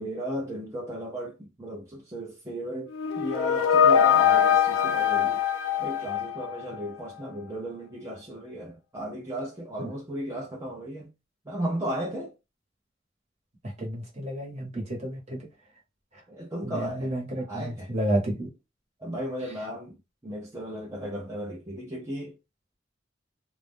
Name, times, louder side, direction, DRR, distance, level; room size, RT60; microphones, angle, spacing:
voice 1, 0.0-2.9 3.2-5.4 5.8-11.1 11.5-12.3 16.3-17.1 17.5-17.9 19.0-20.0 20.2-22.3, equal, 15° right, 0.6 m, -35 dB
sound 1, 2.9-6.8, left 8 dB, 85° left, 0.3 m, -22 dB
voice 2, 13.8-15.5 16.6-18.5, right 1 dB, 35° right, 1.0 m, -31 dB
2.4 x 2.1 x 3.3 m
head